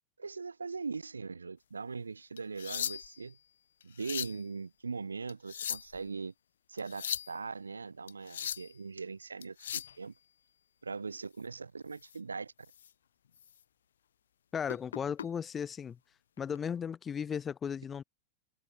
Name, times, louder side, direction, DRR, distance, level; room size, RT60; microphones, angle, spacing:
voice 1, 0.2-3.4 3.8-6.3 6.7-10.1 10.8-12.5, right 4 dB, 75° right, 8.0 m, -40 dB
sound 1, 2.4-3.3 3.8-4.4 5.3-6.0 6.8-7.3 8.1-8.7 9.4-10.0 12.0-12.2 12.7-12.9 13.4-13.5 14.7-15.3 16.4-16.6, left 9 dB, 65° left, 1.1 m, -38 dB
voice 2, 14.5-16.0 16.4-18.0, left 7 dB, 20° left, 1.2 m, -36 dB
figure-of-eight pair, 90°, 0 cm